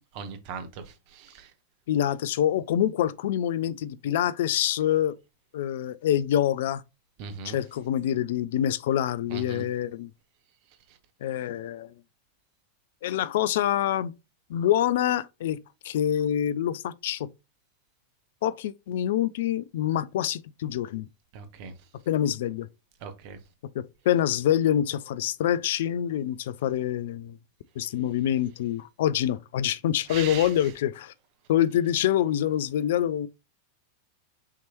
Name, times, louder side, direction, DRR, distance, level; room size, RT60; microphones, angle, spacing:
voice 1, 0.1-1.5 7.2-7.6 9.3-9.6 21.3-21.7 23.0-23.4 30.1-30.5, right 6 dB, 45° right, 0.9 m, -39 dB
voice 2, 1.9-5.2 5.5-6.8 7.4-10.1 11.2-11.9 13.0-14.1 14.5-15.6 15.8-17.3 18.4-21.1 22.1-22.7 23.7-27.4 27.8-31.1 31.5-33.3, left 11 dB, 55° left, 0.3 m, -26 dB
5.7 x 3.0 x 2.8 m
figure-of-eight pair, 90°, 0 cm